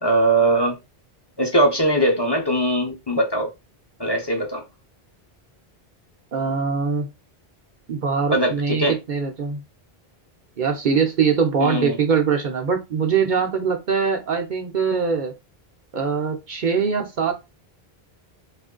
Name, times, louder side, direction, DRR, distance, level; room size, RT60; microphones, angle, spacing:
voice 1, 0.0-0.8 1.4-3.5 4.0-4.6 8.3-9.0 11.6-11.9, right 1 dB, 30° left, 0.7 m, -20 dB
voice 2, 6.3-7.1 7.9-9.6 10.6-15.3 15.9-17.3, right 6 dB, 55° right, 0.6 m, -22 dB
3.0 x 2.4 x 3.7 m
omnidirectional pair, 1.1 m